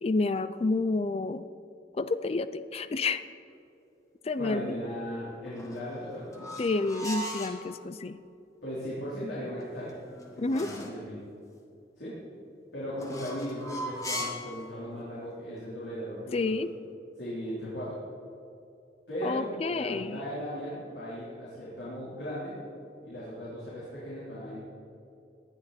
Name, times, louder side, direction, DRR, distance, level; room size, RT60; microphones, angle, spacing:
voice 1, 0.0-1.5 2.0-3.2 4.2-4.8 6.6-8.2 10.4-10.7 16.3-16.7 19.2-20.2, left 3 dB, 35° left, 13 dB, 0.4 m, -29 dB
voice 2, 4.4-6.5 8.6-9.9 10.3-11.2 12.0-12.2 12.7-16.6 17.2-18.0 19.1-22.5 23.0-24.6, equal, 80° left, -9 dB, 4.0 m, -37 dB
sound 1, 5.5-7.6 9.6-11.0 12.9-14.5, equal, 20° left, 1.4 m, -38 dB
18.5 x 11.5 x 4.3 m, 2.6 s
head